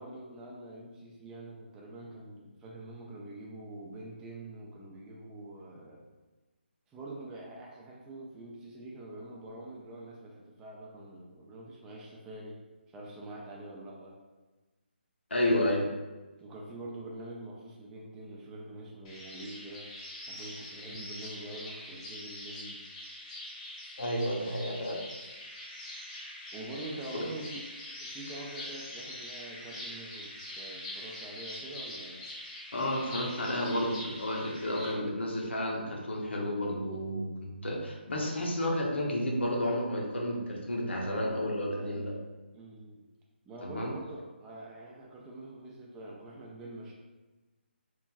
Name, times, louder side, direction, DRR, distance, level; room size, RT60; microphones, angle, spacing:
voice 1, 0.0-6.0 6.9-12.6 12.9-14.2 16.4-19.9 20.3-22.8 26.5-27.7 28.0-32.3 41.0-42.2 42.5-43.0 43.5-46.9, right 1 dB, 10° right, -3 dB, 0.3 m, -45 dB
voice 2, 15.3-15.9 20.9-21.0 24.0-25.0 27.1-27.3 32.7-42.1 43.6-43.9, left 1 dB, 80° left, -1 dB, 0.7 m, -31 dB
sound 1, 19.0-34.9, left 1 dB, 30° left, 0.8 m, -44 dB
3.0 x 2.4 x 2.3 m, 1.2 s
figure-of-eight pair, 150°, 6 cm